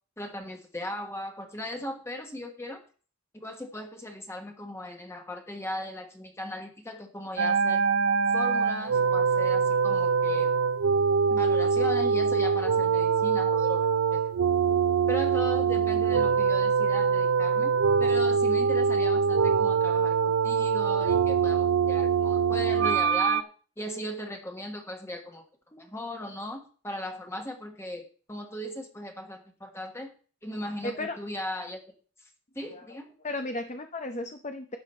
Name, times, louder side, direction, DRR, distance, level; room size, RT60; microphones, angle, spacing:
voice 1, 0.2-2.8 3.4-7.8 8.3-10.5 11.3-14.2 15.1-17.7 18.0-23.5 23.8-25.4 25.7-30.1 30.4-31.8 32.5-33.1, left 1 dB, 15° left, 3 dB, 1.3 m, -37 dB
sound 1, 7.4-23.4, right 6 dB, 70° right, 0.4 m, -24 dB
voice 2, 30.8-31.2 32.7-33.0 33.2-34.8, left 2 dB, 35° left, 6 dB, 0.7 m, -34 dB
12.0 x 8.4 x 4.3 m, 0.41 s
head